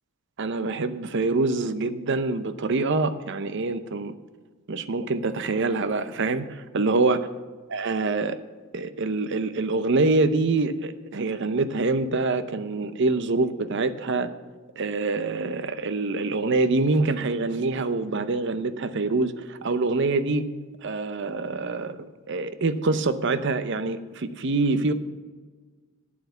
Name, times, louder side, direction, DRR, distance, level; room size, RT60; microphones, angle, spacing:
voice 1, 0.4-4.1 4.7-7.2 7.7-8.4 8.7-14.3 14.8-20.5 20.8-24.9, right 3 dB, 60° right, 0.6 m, -25 dB
8.8 x 7.9 x 6.9 m
head